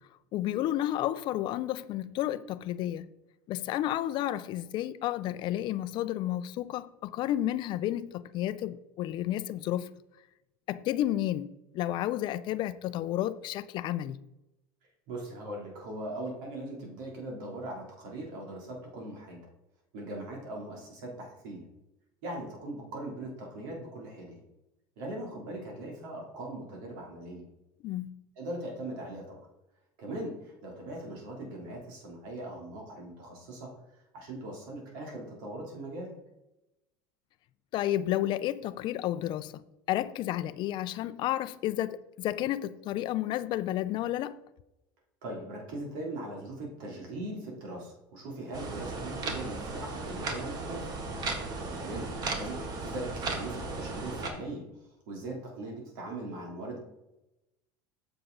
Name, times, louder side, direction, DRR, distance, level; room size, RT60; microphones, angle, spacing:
voice 1, 0.3-3.1 3.5-9.9 10.7-14.2 27.8-28.2 37.7-39.6 39.9-44.4, left 13 dB, 50° left, 0.5 m, -31 dB
voice 2, 15.1-19.4 19.9-21.6 22.2-24.4 25.0-27.4 28.4-29.5 30.0-33.7 34.1-36.2 45.2-50.9 51.8-54.7 55.1-56.8, right 1 dB, 75° right, 3.0 m, -40 dB
sound 1, 48.5-54.3, right 3 dB, 40° right, 1.5 m, -36 dB
7.8 x 6.8 x 3.9 m
supercardioid pair, 125°, 10 cm